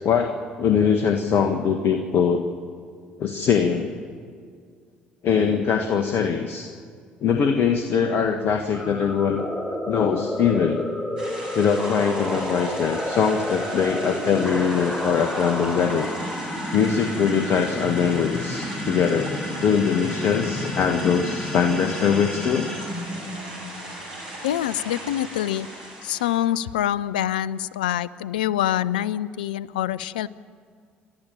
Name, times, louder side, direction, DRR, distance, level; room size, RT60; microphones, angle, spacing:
voice 1, 0.0-2.4 3.2-3.9 5.2-6.7 7.2-9.4 9.9-10.8 11.5-16.1 16.7-19.3 19.6-22.7, left 7 dB, 55° left, 6 dB, 1.5 m, -22 dB
sound 1, 8.7-23.9, left 1 dB, 10° left, 3.8 m, -31 dB
sound 2, 11.2-26.4, right 1 dB, 85° right, 6.0 m, -38 dB
voice 2, 24.4-25.7 26.0-30.3, left 12 dB, 80° left, 19 dB, 0.5 m, -25 dB
29.5 x 12.5 x 9.0 m, 2.1 s
hypercardioid pair, 55°, 5 cm